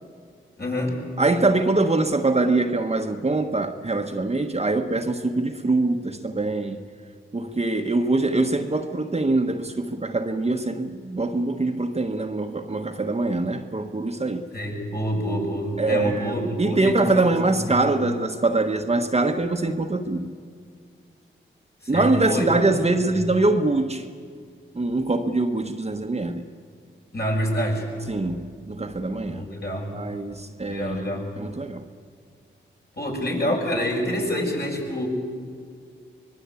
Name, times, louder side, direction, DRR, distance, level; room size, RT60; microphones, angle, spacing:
voice 1, 0.6-1.0 14.5-17.8 21.8-22.6 23.1-23.2 27.1-27.9 29.3-30.0 30.7-31.3 33.0-35.1, equal, 50° left, 7.2 m, -27 dB
voice 2, 1.2-6.8 7.3-14.5 15.8-20.3 21.9-24.0 24.7-26.4 28.1-29.4 29.9-31.1 31.4-31.8, right 2 dB, 30° right, 1.4 m, -23 dB
24.5 x 21.0 x 8.5 m
cardioid pair, 55°, 21 cm